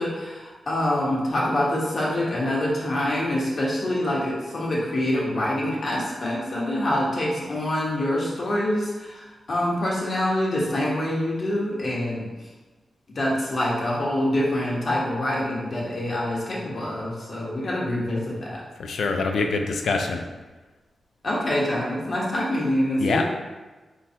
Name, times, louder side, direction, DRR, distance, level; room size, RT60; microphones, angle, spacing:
voice 1, 0.0-12.3 13.1-18.6 21.2-23.2, left 1 dB, 50° left, -4 dB, 1.2 m, -25 dB
voice 2, 18.8-20.2 23.0-23.2, left 4 dB, 90° left, 4 dB, 0.5 m, -24 dB
4.3 x 3.8 x 2.8 m, 1.2 s
wide cardioid pair, 120°, 0 cm